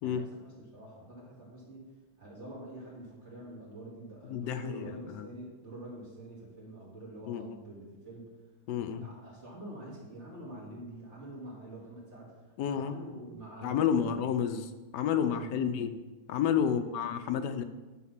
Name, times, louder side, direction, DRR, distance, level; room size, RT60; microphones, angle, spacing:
voice 1, 0.0-1.9 2.2-8.4 9.0-14.4 15.1-15.9 16.6-17.0, right 1 dB, 45° right, -5 dB, 2.7 m, -46 dB
voice 2, 4.3-4.9 5.1-5.3 7.3-7.6 8.7-9.1 12.6-13.0 13.6-14.7 14.9-15.9 16.3-17.6, left 8 dB, 80° left, 9 dB, 1.2 m, -30 dB
10.0 x 4.2 x 5.8 m, 1.2 s
omnidirectional pair, 1.8 m